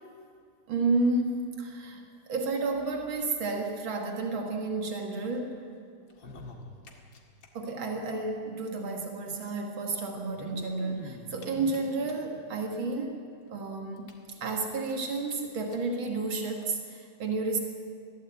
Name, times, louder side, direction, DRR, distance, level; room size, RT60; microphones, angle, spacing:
voice 1, 0.7-2.0 2.3-5.6 7.5-13.2 13.5-14.2 14.4-17.6, right 3 dB, 85° right, 2 dB, 2.7 m, -31 dB
sound 1, 6.0-7.5 7.7-7.8 8.0-8.1 9.2-9.3 10.1-12.4 13.0-13.1 13.5-13.6 14.0-14.9 15.3-15.4 15.7-15.8 16.6-16.7, left 2 dB, 75° left, 2.7 m, -46 dB
22.0 x 16.0 x 8.3 m, 2.3 s
omnidirectional pair, 2.1 m